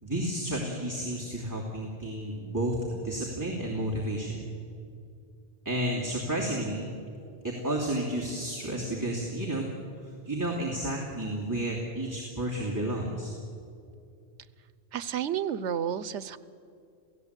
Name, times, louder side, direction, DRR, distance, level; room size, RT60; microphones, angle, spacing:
voice 1, 0.0-4.4 5.6-6.9 7.4-9.7 10.0-13.3, right 1 dB, 15° right, -4 dB, 2.8 m, -31 dB
voice 2, 14.9-16.4, right 9 dB, 85° right, 16 dB, 1.1 m, -31 dB
28.5 x 17.0 x 8.2 m, 2.5 s
omnidirectional pair, 1.2 m